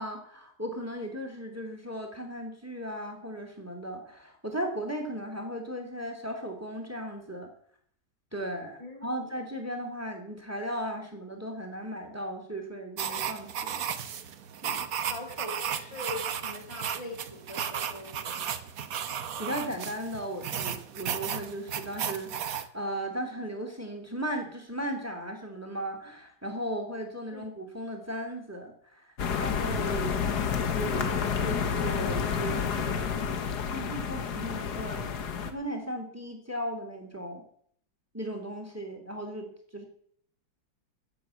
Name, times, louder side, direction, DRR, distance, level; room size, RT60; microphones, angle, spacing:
voice 1, 0.0-7.5 8.3-13.9 14.6-14.9 19.4-30.2 30.8-33.1 33.7-37.4 38.1-39.8, right 1 dB, 5° right, 3 dB, 2.9 m, -36 dB
voice 2, 8.8-9.3 15.1-18.5 27.3-27.5 29.9-30.5, left 2 dB, 15° left, 2 dB, 1.9 m, -42 dB
sound 1, 13.0-22.7, right 8 dB, 55° right, 1.2 m, -34 dB
sound 2, 29.2-35.5, left 6 dB, 55° left, 1.7 m, -30 dB
14.5 x 7.7 x 8.3 m, 0.63 s
omnidirectional pair, 2.2 m